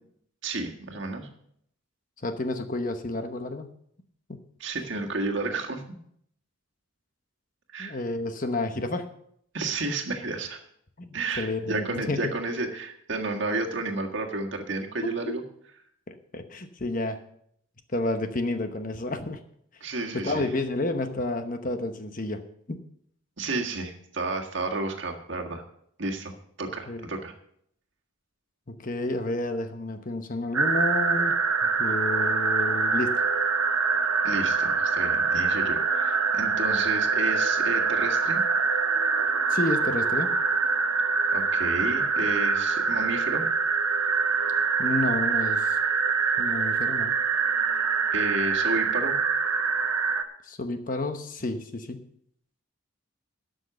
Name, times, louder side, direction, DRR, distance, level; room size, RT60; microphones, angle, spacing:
voice 1, 0.4-1.3 4.6-6.0 7.7-8.0 9.5-10.6 11.1-15.4 19.8-20.4 23.4-25.6 26.0-26.3 26.6-27.3 34.2-38.4 41.3-43.5 48.1-49.2, right 3 dB, 55° right, 2 dB, 1.7 m, -31 dB
voice 2, 2.2-3.7 4.3-4.4 7.8-9.1 11.0-12.3 15.0-15.4 16.1-17.2 17.9-19.4 20.1-22.4 22.7-22.8 26.9-27.0 28.7-31.4 31.6-33.2 39.5-40.3 44.8-45.8 46.4-47.2 50.4-52.0, left 2 dB, 40° left, 8 dB, 1.0 m, -30 dB
sound 1, 30.5-50.2, right 5 dB, 85° right, 1.1 m, -25 dB
12.5 x 6.4 x 6.8 m, 0.69 s
head